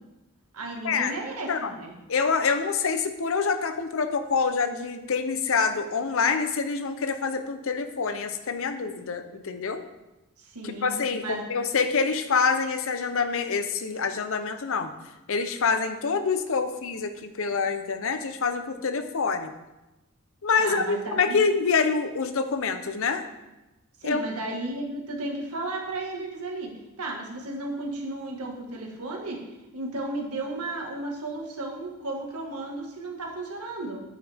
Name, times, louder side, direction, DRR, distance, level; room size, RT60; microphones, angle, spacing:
voice 1, 0.5-1.9 10.4-10.9 11.2-11.4 20.6-21.4 24.0-26.7 27.0-29.4 29.7-34.0, right 2 dB, 90° right, 0 dB, 1.8 m, -34 dB
voice 2, 2.1-9.8 10.8-14.9 15.3-19.5 20.4-23.2 24.0-24.2, left 5 dB, 65° left, 9 dB, 0.7 m, -26 dB
9.3 x 8.5 x 3.5 m, 1.0 s
head